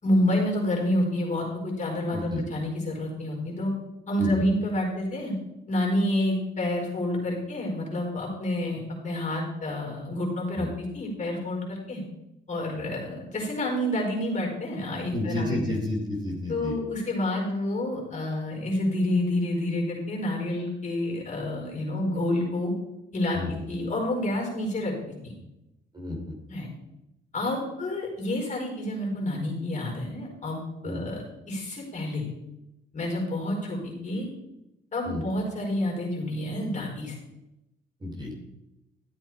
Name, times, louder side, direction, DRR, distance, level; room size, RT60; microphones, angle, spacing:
voice 1, 0.0-3.7 4.1-5.3 5.7-12.0 12.5-15.6 16.5-22.7 23.1-24.9 25.2-25.3 26.5-26.7 27.3-32.3 32.9-34.3 34.9-37.2, left 1 dB, 40° left, -1 dB, 4.6 m, -28 dB
voice 2, 2.1-2.4 4.2-4.4 10.5-10.7 15.1-16.7 23.3-23.5 25.9-26.2 30.8-31.0 35.0-35.2 38.0-38.3, left 1 dB, 20° right, 0 dB, 3.3 m, -30 dB
13.0 x 8.1 x 4.8 m, 0.93 s
cardioid pair, 90°, 20 cm